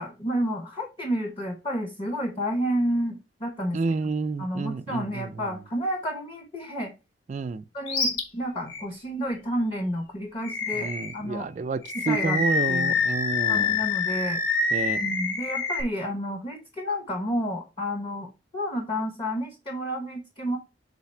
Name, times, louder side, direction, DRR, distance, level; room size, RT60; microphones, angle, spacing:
voice 1, 0.0-3.8 4.4-6.9 7.7-11.5 11.9-13.0 13.5-14.4 15.0-20.6, equal, 30° left, 0.9 m, -30 dB
voice 2, 3.7-5.3 7.3-7.6 10.8-13.8 14.7-15.0, right 4 dB, 40° right, 0.3 m, -29 dB
Animal, 7.9-8.2 8.7-8.8 10.4-11.2 11.8-15.8, left 4 dB, 75° left, 1.4 m, -26 dB
5.6 x 4.0 x 4.2 m
head